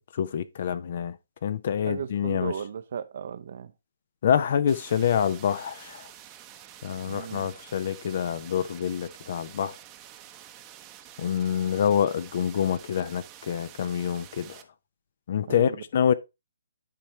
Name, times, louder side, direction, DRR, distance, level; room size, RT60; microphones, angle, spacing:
voice 1, 0.1-1.2 1.4-2.5 4.2-6.1 6.8-9.8 11.2-14.6 15.3-16.1, left 8 dB, 50° left, 0.6 m, -26 dB
voice 2, 1.9-3.7 7.1-7.5 15.5-15.8, right 7 dB, 55° right, 0.8 m, -35 dB
sound 1, 4.7-14.6, right 11 dB, 20° right, 0.8 m, -48 dB
10.5 x 4.4 x 3.1 m
hypercardioid pair, 150°, 0 cm